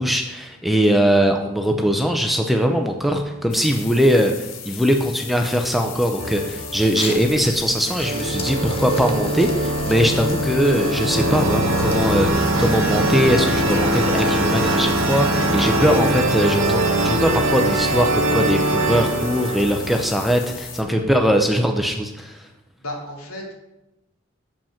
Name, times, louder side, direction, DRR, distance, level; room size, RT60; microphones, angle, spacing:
voice 1, 0.0-22.4, equal, ahead, 3 dB, 0.5 m, -21 dB
sound 1, 3.5-20.8, left 8 dB, 65° left, 0.8 m, -37 dB
sound 2, 6.2-7.4 8.0-20.6, right 1 dB, 65° right, 1.1 m, -22 dB
sound 3, 6.8-15.1, left 2 dB, 25° left, 0.8 m, -38 dB
voice 2, 22.8-23.5, left 1 dB, 85° left, -2 dB, 2.5 m, -33 dB
7.2 x 5.2 x 5.6 m, 0.96 s
head